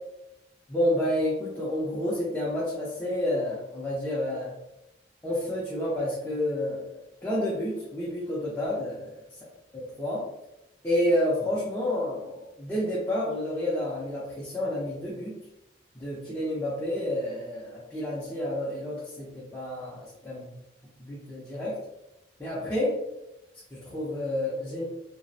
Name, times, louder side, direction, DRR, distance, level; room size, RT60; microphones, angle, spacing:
voice 1, 0.7-4.5 5.2-9.2 9.7-10.2 10.8-15.4 15.9-20.6 21.0-21.8 22.4-23.0 23.7-24.8, left 1 dB, 10° left, -9 dB, 0.5 m, -30 dB
2.4 x 2.0 x 2.5 m, 0.90 s
head